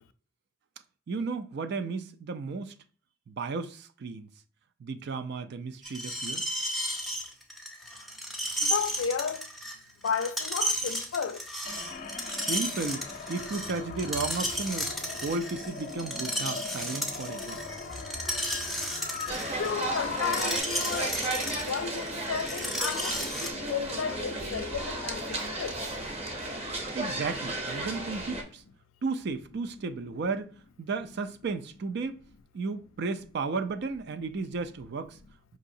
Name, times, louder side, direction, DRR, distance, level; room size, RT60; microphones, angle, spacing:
voice 1, 1.1-2.7 3.3-4.3 4.8-6.4 12.3-14.9 15.2-17.6 26.9-28.6 29.0-32.2 32.5-35.2, right 4 dB, 60° right, 0.4 m, -34 dB
Screech, 5.8-23.5, equal, ahead, 0.5 m, -34 dB
voice 2, 8.6-9.5 10.0-11.4 19.6-25.7, left 6 dB, 85° left, 0.4 m, -33 dB
sound 1, 11.6-20.6, left 4 dB, 45° left, 0.7 m, -40 dB
sound 2, 19.3-28.4, right 2 dB, 30° right, 0.7 m, -34 dB
4.9 x 2.7 x 2.6 m
head